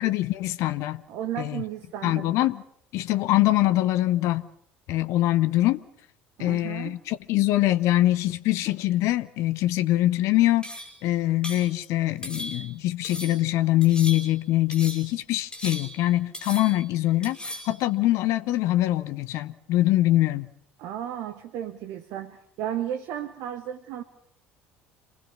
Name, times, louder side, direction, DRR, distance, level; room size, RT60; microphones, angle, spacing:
voice 1, 0.0-1.0 1.4-1.6 2.0-2.6 2.9-4.5 4.9-5.8 6.4-10.7 11.0-20.5, left 15 dB, 55° left, 0.9 m, -23 dB
voice 2, 1.1-2.3 6.4-7.0 20.8-24.0, right 10 dB, 55° right, 1.5 m, -34 dB
sound 1, 10.6-11.0 11.4-11.7 12.2-12.7 13.0-13.4 13.8-14.4 14.7-15.1 15.5-16.1 16.3-16.9 17.2-17.8, left 1 dB, 15° left, 6.3 m, -38 dB
28.0 x 20.0 x 7.2 m
figure-of-eight pair, 60°, 6 cm